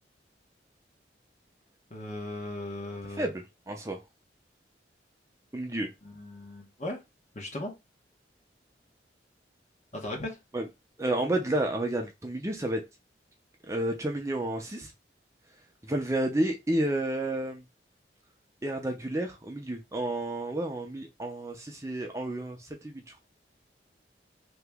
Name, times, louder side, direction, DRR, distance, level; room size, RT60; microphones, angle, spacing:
voice 1, 1.9-3.3 6.0-7.0 7.3-7.7 9.9-10.4, left 1 dB, 40° left, 1.1 m, -37 dB
voice 2, 3.2-4.0 5.5-5.9 10.5-10.7 11.0-12.8 13.7-14.9 15.8-17.6 18.6-23.0, right 1 dB, 15° right, 0.6 m, -31 dB
2.9 x 2.9 x 3.5 m
head